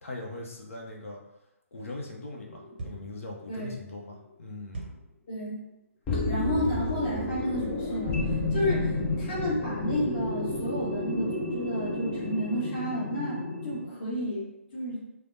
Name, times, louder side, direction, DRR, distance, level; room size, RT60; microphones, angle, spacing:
voice 1, 0.0-1.2 1.7-4.9, left 2 dB, 65° left, -1 dB, 0.7 m, -40 dB
sound 1, 2.4-3.0 3.5-3.6 6.1-13.9, left 2 dB, 10° left, 0.3 m, -31 dB
sound 2, 2.8-3.2 4.7-5.1 6.6-7.0, right 2 dB, 40° right, 0.6 m, -39 dB
voice 2, 3.5-3.8 5.3-5.6 6.3-13.4 13.6-14.5 14.7-15.0, equal, 35° left, -8 dB, 1.4 m, -31 dB
3.2 x 2.1 x 2.7 m, 0.92 s
figure-of-eight pair, 150°, 8 cm